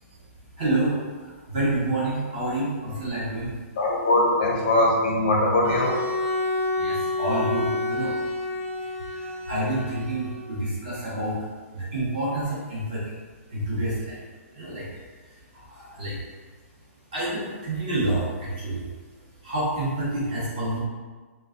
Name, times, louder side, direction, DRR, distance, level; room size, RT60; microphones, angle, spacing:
voice 1, 0.6-3.5 6.8-8.1 9.1-11.3 11.7-13.1 13.5-14.2 14.5-14.9 15.5-16.2 17.1-18.9 19.4-20.8, right 1 dB, 35° right, -8 dB, 0.7 m, -28 dB
voice 2, 3.8-6.0, left 1 dB, 30° left, -3 dB, 0.5 m, -21 dB
Bowed string instrument, 5.6-10.6, left 2 dB, 65° right, 0.5 m, -29 dB
2.2 x 2.1 x 3.5 m, 1.4 s
hypercardioid pair, 180°, 8 cm